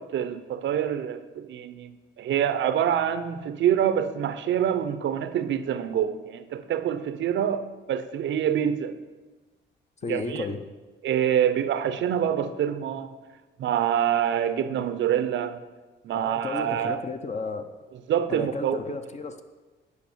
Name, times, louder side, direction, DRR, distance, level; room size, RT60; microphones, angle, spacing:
voice 1, 0.0-8.9 10.1-10.5 11.0-13.1 13.6-15.6 16.0-17.0 18.1-18.8, right 9 dB, 70° right, 12 dB, 0.7 m, -26 dB
voice 2, 10.0-10.6 16.1-17.6 18.3-19.4, left 4 dB, 35° left, 8 dB, 0.8 m, -33 dB
8.5 x 5.3 x 6.7 m, 1.2 s
cardioid pair, 90°, 20 cm